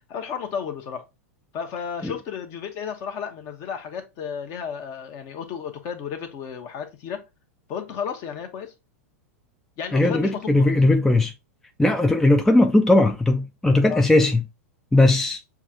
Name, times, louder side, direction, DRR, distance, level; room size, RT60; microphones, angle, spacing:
voice 1, 0.1-1.0 1.5-7.2 7.7-8.7 9.8-10.7 13.9-14.1, left 7 dB, 45° left, 1.1 m, -33 dB
voice 2, 9.9-11.3 11.8-14.4 14.9-15.4, left 2 dB, 5° left, 0.4 m, -18 dB
7.0 x 2.5 x 2.8 m
hypercardioid pair, 100°, 8 cm